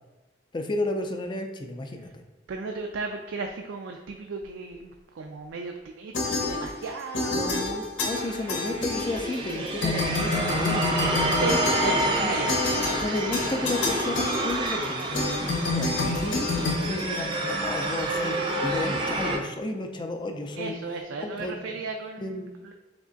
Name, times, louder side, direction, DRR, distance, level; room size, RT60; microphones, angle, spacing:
voice 1, 0.5-2.2 7.3-11.2 12.2-12.3 13.0-20.7 21.2-21.6 22.2-22.5, left 2 dB, 25° left, 5 dB, 0.4 m, -32 dB
voice 2, 2.5-7.8 11.4-12.6 20.6-22.7, right 3 dB, 80° right, 3 dB, 0.4 m, -35 dB
sound 1, 6.1-6.9 7.1-9.5 9.8-17.7, left 3 dB, 75° left, 0.8 m, -28 dB
sound 2, 8.1-19.4, right 1 dB, 25° right, 0.5 m, -29 dB
3.6 x 3.2 x 3.8 m, 1.1 s
head